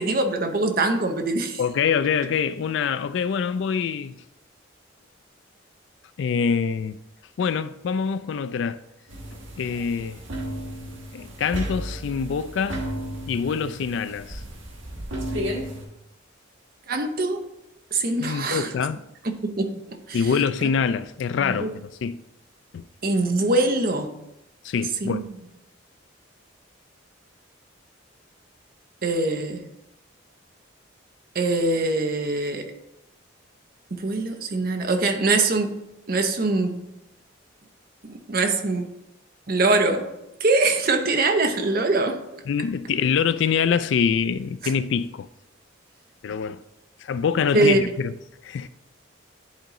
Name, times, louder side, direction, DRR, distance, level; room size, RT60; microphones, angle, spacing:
voice 1, 0.0-1.6 16.9-17.4 17.9-18.7 19.2-20.2 21.4-21.7 23.0-24.1 25.0-25.3 29.0-29.6 31.3-32.7 33.9-35.8 36.1-36.9 38.0-38.9 39.5-40.1 40.4-42.2 47.5-47.8, right 2 dB, 50° right, 0.7 m, -23 dB
voice 2, 1.6-4.2 6.2-7.0 7.4-8.8 9.6-10.2 11.1-12.8 13.3-14.4 18.2-19.0 20.1-22.2 22.7-22.9 24.6-25.3 42.5-45.3 46.2-46.6 47.0-48.2 48.4-48.7, left 6 dB, 65° left, 0.3 m, -25 dB
sound 1, 9.1-15.9, equal, 75° right, 1.3 m, -33 dB
10.5 x 3.8 x 3.0 m
head